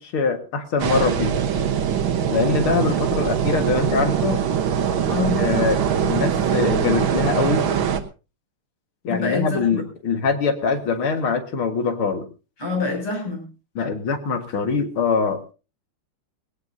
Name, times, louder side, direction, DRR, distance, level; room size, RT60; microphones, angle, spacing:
voice 1, 0.0-1.4 2.3-4.4 5.4-7.7 9.0-12.3 13.8-15.5, left 5 dB, 75° left, 6 dB, 2.6 m, -23 dB
sound 1, 0.8-8.0, right 8 dB, 70° right, 1.9 m, -22 dB
voice 2, 5.1-5.5 9.1-9.8 12.6-13.5, left 4 dB, 90° left, 1 dB, 8.2 m, -26 dB
19.5 x 17.5 x 2.7 m, 0.32 s
omnidirectional pair, 2.4 m